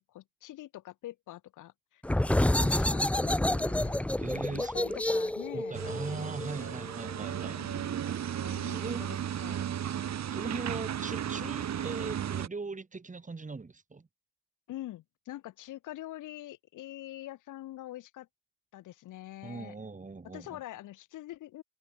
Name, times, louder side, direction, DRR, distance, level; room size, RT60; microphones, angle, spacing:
voice 1, 0.0-2.0 2.4-4.1 4.3-6.8 7.4-8.0 8.4-9.6 14.7-18.3 18.7-19.7 20.3-21.6, left 14 dB, 85° left, 6.2 m, -45 dB
sound 1, 2.0-7.4, left 1 dB, 5° left, 0.6 m, -29 dB
voice 2, 4.2-5.0 5.5-7.6 8.7-9.2 10.3-14.1 19.4-20.6, right 4 dB, 25° right, 3.5 m, -40 dB
sound 2, 5.7-12.5, right 9 dB, 60° right, 5.1 m, -35 dB
cardioid pair, 90°, 30 cm